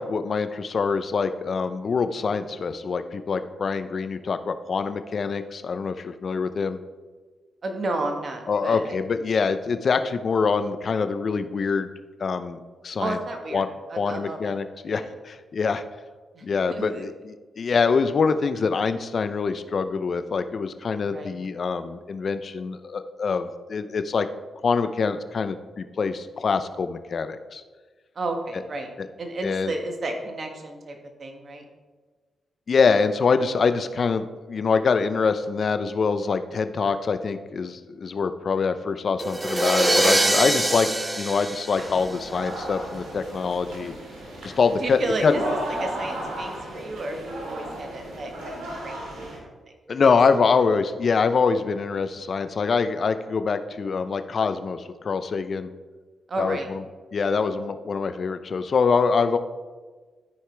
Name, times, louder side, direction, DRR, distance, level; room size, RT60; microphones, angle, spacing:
voice 1, 0.0-6.8 8.5-11.9 12.2-12.6 12.8-13.2 13.5-13.7 14.0-15.8 16.4-24.3 24.6-27.6 29.0-29.1 29.4-29.7 32.7-40.9 41.2-43.9 44.4-45.3 49.9-55.7 56.4-56.8 57.1-59.4, left 5 dB, 60° left, 10 dB, 0.6 m, -24 dB
voice 2, 7.6-9.0 13.0-13.6 13.9-14.5 14.9-15.1 16.3-17.0 21.1-21.3 28.1-28.9 29.2-31.6 44.8-45.4 45.8-49.0 49.3-49.4 49.9-50.0 56.3-56.7, right 2 dB, 55° right, 3 dB, 1.5 m, -32 dB
sound 1, 39.2-42.5, right 1 dB, 20° right, 0.8 m, -23 dB
sound 2, 41.7-49.4, right 1 dB, 85° right, 2.2 m, -35 dB
13.5 x 4.7 x 3.4 m, 1.4 s
supercardioid pair, 55°, 0 cm